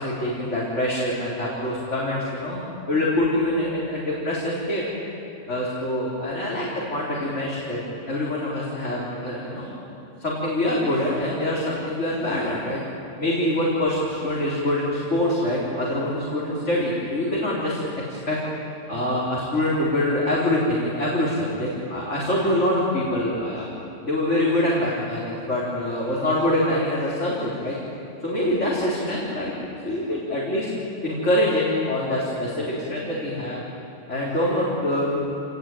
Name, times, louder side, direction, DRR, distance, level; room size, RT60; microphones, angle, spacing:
voice 1, 0.0-2.6 2.9-4.8 5.5-9.7 10.2-12.8 13.2-17.8 18.1-18.4 18.9-23.7 24.0-25.2 25.5-27.8 28.2-29.5 29.8-30.7 31.0-33.6 34.1-35.2, left 1 dB, 75° left, -6 dB, 4.4 m, -25 dB
28.0 x 19.5 x 9.3 m, 2.8 s
omnidirectional pair, 1.3 m